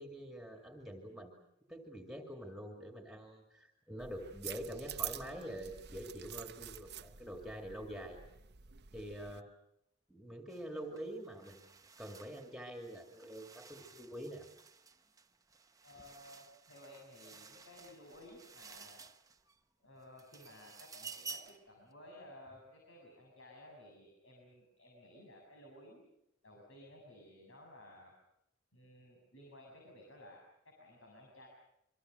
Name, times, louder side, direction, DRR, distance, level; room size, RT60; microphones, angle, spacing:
voice 1, 0.0-1.3 1.7-8.2 8.9-9.5 10.1-14.5, equal, ahead, 3 dB, 2.4 m, -46 dB
sound 1, 4.0-9.4, right 11 dB, 55° right, 0.9 m, -47 dB
sound 2, 10.5-10.7 11.0-19.6 20.0-21.7, right 4 dB, 20° right, 1.0 m, -53 dB
voice 2, 15.8-19.0 19.8-26.1 26.4-28.1 28.7-31.5, left 1 dB, 75° left, 0 dB, 7.0 m, -56 dB
27.0 x 24.5 x 6.7 m, 0.80 s
head